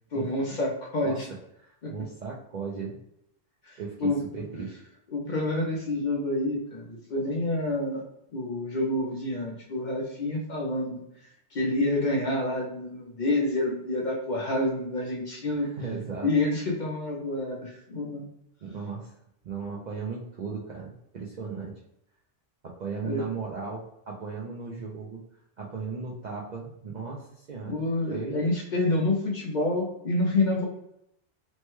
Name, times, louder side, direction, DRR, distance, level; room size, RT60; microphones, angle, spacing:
voice 1, 0.1-1.3 1.8-1.9 3.6-4.2 5.1-8.0 8.3-15.7 16.2-18.3 23.0-23.3 27.7-30.7, left 2 dB, 50° left, -2 dB, 0.6 m, -28 dB
voice 2, 1.7-2.9 3.8-4.8 15.6-16.3 18.6-19.1 19.4-21.7 22.6-25.2 25.6-27.8 28.1-28.5, right 5 dB, 60° right, -3 dB, 0.5 m, -36 dB
3.1 x 2.1 x 3.0 m, 0.79 s
omnidirectional pair, 1.2 m